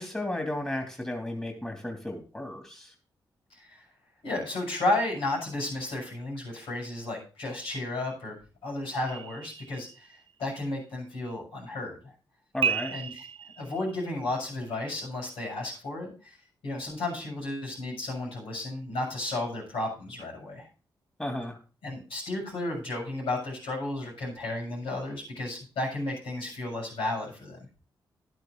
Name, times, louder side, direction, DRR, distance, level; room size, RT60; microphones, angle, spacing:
voice 1, 0.0-2.9 12.5-13.0 21.2-21.6, left 1 dB, 15° left, 3 dB, 2.8 m, -34 dB
voice 2, 4.2-8.4 8.6-10.1 10.4-12.1 12.9-13.3 13.6-16.4 16.6-20.7 21.8-27.6, left 2 dB, 80° left, -3 dB, 7.4 m, -33 dB
sound 1, 9.1-10.3 12.6-14.1, right 7 dB, 75° right, 0.5 m, -33 dB
11.0 x 9.7 x 3.9 m, 0.35 s
supercardioid pair, 45°, 9 cm